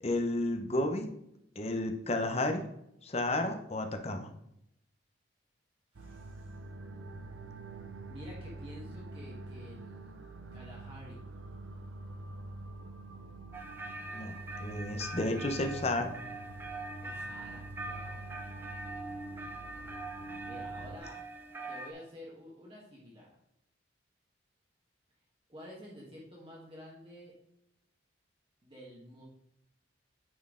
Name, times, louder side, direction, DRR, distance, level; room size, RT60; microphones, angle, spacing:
voice 1, 0.0-1.1 1.6-2.6 3.0-4.3 14.1-14.3 14.6-16.1, left 2 dB, 35° left, 6 dB, 0.8 m, -32 dB
voice 2, 5.9-6.6 8.1-10.1 10.5-11.2 17.0-18.2 20.4-21.2 21.7-23.4 25.5-27.3 28.6-29.2, equal, 30° right, -5 dB, 1.4 m, -50 dB
sound 1, 5.9-21.0, right 2 dB, 85° right, 0.7 m, -46 dB
sound 2, 13.5-21.9, right 2 dB, 10° right, 0.6 m, -43 dB
9.1 x 4.4 x 3.7 m, 0.79 s
head